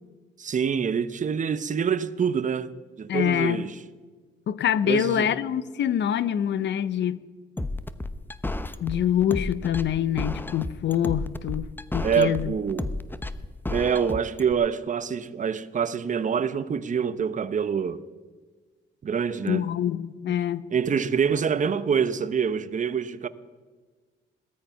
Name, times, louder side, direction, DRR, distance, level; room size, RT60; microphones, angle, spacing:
voice 1, 0.4-2.7 3.0-3.7 4.8-5.3 12.0-12.9 13.7-18.0 19.0-19.7 20.3-20.4 20.7-23.3, right 7 dB, 40° right, 0.9 m, -26 dB
voice 2, 3.1-3.6 4.5-7.2 8.8-12.5 19.4-20.7, left 10 dB, 65° left, 0.8 m, -25 dB
sound 1, 7.6-14.5, left 2 dB, 10° left, 0.9 m, -32 dB
18.5 x 13.5 x 5.8 m
cardioid pair, 90°, 20 cm